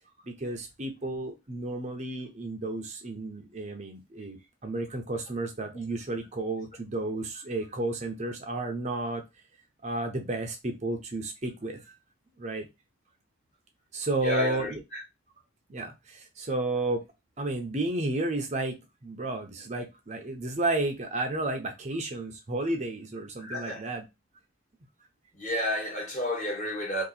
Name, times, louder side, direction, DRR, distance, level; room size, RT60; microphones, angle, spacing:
voice 1, 0.2-4.4 4.6-9.2 9.8-11.9 12.4-12.7 13.9-14.8 15.7-17.0 17.4-18.8 19.0-24.0, right 2 dB, 35° right, 0.6 m, -32 dB
voice 2, 14.2-15.0 23.4-23.9 25.3-27.0, left 1 dB, 35° left, 1.4 m, -31 dB
2.8 x 2.6 x 4.0 m
head